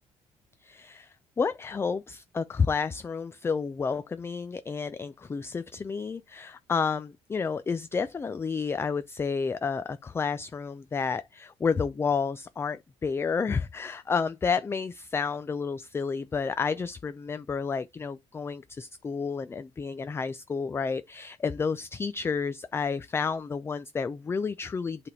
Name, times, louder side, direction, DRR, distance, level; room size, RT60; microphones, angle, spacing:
voice 1, 0.6-25.1, left 5 dB, 20° left, 0.4 m, -30 dB
8.3 x 3.5 x 4.1 m
cardioid pair, 110°, 11 cm